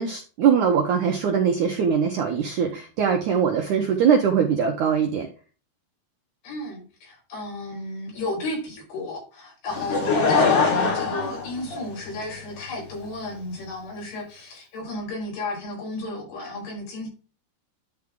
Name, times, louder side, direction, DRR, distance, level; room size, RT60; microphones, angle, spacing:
voice 1, 0.0-5.3, right 7 dB, 70° right, 3 dB, 1.9 m, -22 dB
voice 2, 6.4-17.1, left 2 dB, 70° left, -3 dB, 7.0 m, -33 dB
Laughter / Crowd, 9.7-12.3 13.0-13.1, left 4 dB, 50° left, 3.6 m, -22 dB
11.0 x 4.8 x 3.7 m, 0.35 s
omnidirectional pair, 4.9 m